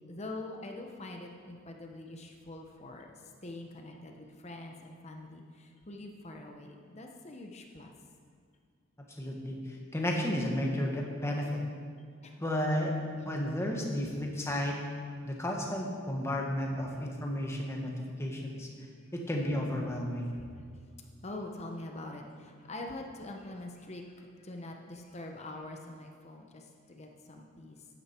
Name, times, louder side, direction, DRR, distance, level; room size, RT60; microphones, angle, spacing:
voice 1, 0.1-7.9 12.2-12.4 13.2-13.3 20.3-20.6 21.2-27.9, left 2 dB, 30° left, 2 dB, 0.8 m, -44 dB
voice 2, 9.2-9.6 9.9-11.6 12.4-13.0 13.2-14.8 15.2-17.9 18.2-18.7 19.1-20.3, left 1 dB, 15° left, 0 dB, 1.4 m, -32 dB
12.0 x 10.0 x 4.4 m, 2.1 s
head